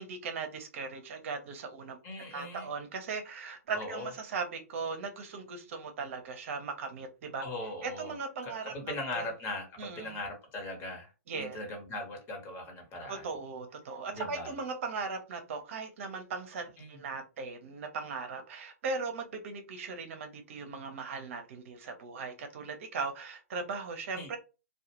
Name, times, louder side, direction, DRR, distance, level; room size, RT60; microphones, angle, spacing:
voice 1, 0.0-7.4 7.8-9.3 9.8-10.1 11.3-11.6 13.1-24.4, right 4 dB, 55° right, 6 dB, 0.7 m, -38 dB
voice 2, 2.0-2.7 3.7-4.1 7.4-8.2 8.4-13.3 14.1-14.5 16.8-17.0 24.1-24.3, left 2 dB, 30° left, 4 dB, 1.0 m, -40 dB
2.3 x 2.2 x 2.9 m, 0.30 s
hypercardioid pair, 125°, 9 cm